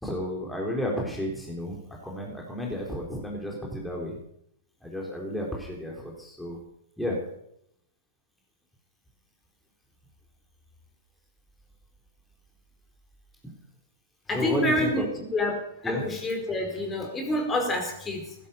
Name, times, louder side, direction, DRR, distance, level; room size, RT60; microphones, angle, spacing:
voice 1, 0.0-1.8 2.0-4.1 4.8-6.6 7.0-7.2 14.3-15.1 15.8-16.0, equal, 5° left, -2 dB, 4.1 m, -31 dB
voice 2, 14.3-15.0 15.3-18.3, left 1 dB, 20° left, 3 dB, 4.6 m, -28 dB
16.5 x 11.5 x 7.0 m, 0.75 s
hypercardioid pair, 110°, 0 cm